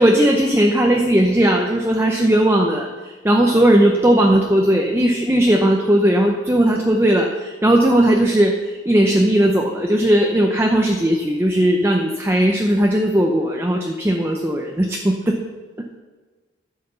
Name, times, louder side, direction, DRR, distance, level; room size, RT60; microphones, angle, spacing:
voice 1, 0.0-15.4 15.8-16.0, right 1 dB, 15° right, 1 dB, 0.7 m, -17 dB
10.5 x 5.8 x 7.0 m, 1.3 s
head